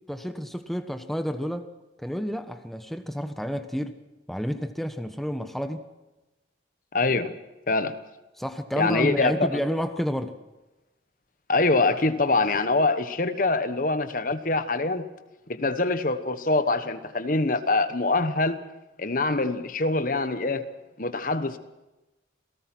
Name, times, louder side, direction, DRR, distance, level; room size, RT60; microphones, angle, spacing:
voice 1, 0.1-1.7 2.0-4.0 4.3-5.9 8.4-10.3, equal, ahead, 7 dB, 1.2 m, -30 dB
voice 2, 6.9-7.3 7.7-7.9 8.8-9.5 11.5-15.1 15.5-18.6 19.0-20.7 21.0-21.6, left 3 dB, 45° left, 11 dB, 1.2 m, -24 dB
28.0 x 18.0 x 6.1 m, 1.0 s
head